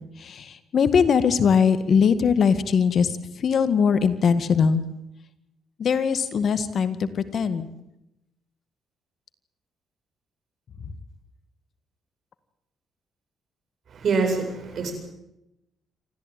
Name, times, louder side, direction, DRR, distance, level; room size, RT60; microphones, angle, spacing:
voice 1, 0.2-3.1 3.4-4.8 5.8-7.7, left 6 dB, 55° left, 12 dB, 1.8 m, -21 dB
voice 2, 13.9-14.9, right 4 dB, 55° right, 4 dB, 7.8 m, -25 dB
28.0 x 14.0 x 9.1 m, 0.85 s
cardioid pair, 90°, 0 cm